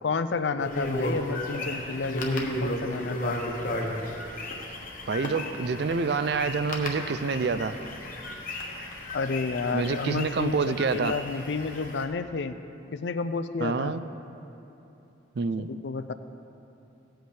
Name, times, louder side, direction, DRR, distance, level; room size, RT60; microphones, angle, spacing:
voice 1, 0.0-3.4 9.1-12.6 12.9-14.0 15.6-16.1, left 4 dB, 60° left, 11 dB, 0.4 m, -31 dB
sound 1, 0.6-12.0, left 1 dB, 45° left, 1.1 m, -34 dB
voice 2, 5.1-7.7 9.7-11.1 13.6-14.0 15.4-15.7, right 4 dB, 55° right, 12 dB, 0.4 m, -27 dB
17.5 x 7.9 x 3.4 m, 2.9 s
head